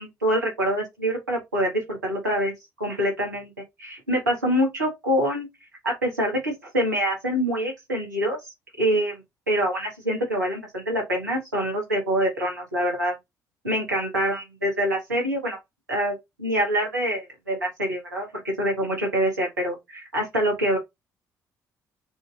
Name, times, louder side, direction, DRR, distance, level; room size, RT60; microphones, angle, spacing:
voice 1, 0.0-2.5 2.8-3.5 3.8-5.5 5.8-8.4 8.8-13.1 13.6-15.6 15.9-20.8, equal, 85° right, 1.6 m, -25 dB
6.1 x 3.1 x 2.5 m
figure-of-eight pair, 40°, 10 cm